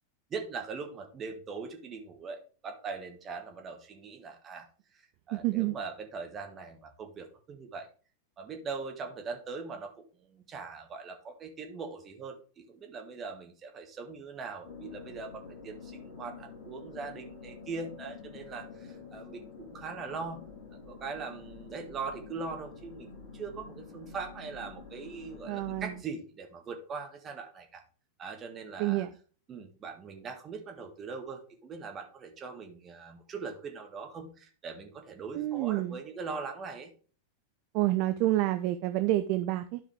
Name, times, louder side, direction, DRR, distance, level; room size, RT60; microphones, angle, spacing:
voice 1, 0.3-4.7 4.9-7.9 8.4-20.4 20.7-27.8 28.2-29.1 29.5-36.9, right 4 dB, 25° right, 4 dB, 1.5 m, -41 dB
voice 2, 5.3-5.8 25.5-25.9 28.8-29.1 35.3-36.0 37.7-39.8, right 16 dB, 45° right, 10 dB, 0.4 m, -28 dB
sound 1, 14.6-26.0, left 5 dB, 45° left, 2.6 m, -48 dB
12.5 x 4.9 x 3.4 m, 0.39 s
figure-of-eight pair, 90°, 0 cm